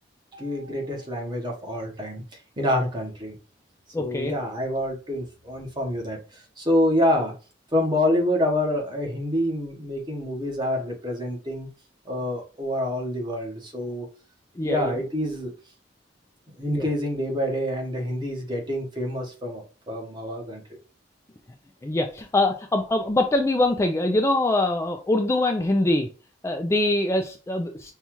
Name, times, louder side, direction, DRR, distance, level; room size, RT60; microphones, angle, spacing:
voice 1, 0.3-2.2 2.6-3.3 4.0-7.3 7.7-11.7 12.1-14.1 14.6-15.5 16.6-20.6, left 1 dB, 25° right, 1 dB, 1.0 m, -27 dB
voice 2, 3.9-4.3 14.6-15.0 16.7-16.9 21.8-26.1 26.4-27.9, left 2 dB, 15° left, 4 dB, 0.3 m, -23 dB
5.4 x 2.3 x 3.0 m, 0.35 s
head